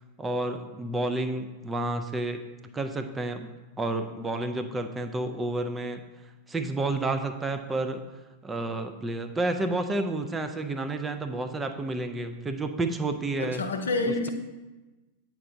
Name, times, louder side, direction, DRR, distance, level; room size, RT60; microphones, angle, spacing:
voice 1, 0.2-2.4 2.7-3.5 3.8-6.0 6.5-8.0 8.4-13.6, right 2 dB, 15° right, 7 dB, 0.4 m, -30 dB
voice 2, 13.4-14.3, left 2 dB, 70° left, 5 dB, 0.6 m, -28 dB
8.4 x 4.6 x 2.6 m, 1.2 s
figure-of-eight pair, 90°, 0 cm